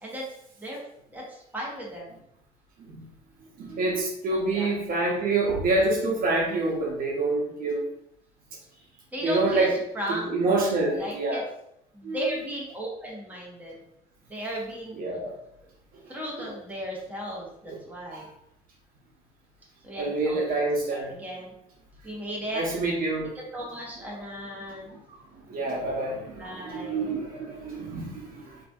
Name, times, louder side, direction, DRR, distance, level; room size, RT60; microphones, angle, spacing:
voice 1, 1.1-2.1 4.3-4.7 9.1-9.7 9.9-11.4 11.9-13.7 14.3-14.9 16.1-18.3 19.8-20.5 20.9-21.5 22.0-22.6 23.5-25.0 26.4-27.1, equal, 10° right, -4 dB, 1.0 m, -35 dB
voice 2, 3.6-7.9 9.2-9.7 10.1-11.5 12.0-12.2 15.0-15.3 16.4-16.5 17.7-17.8 18.1-18.3 20.0-21.1 22.5-23.3 24.9-25.2 25.5-28.6, right 2 dB, 60° right, -2 dB, 0.9 m, -27 dB
3.9 x 2.7 x 2.3 m, 0.78 s
cardioid pair, 110°, 17 cm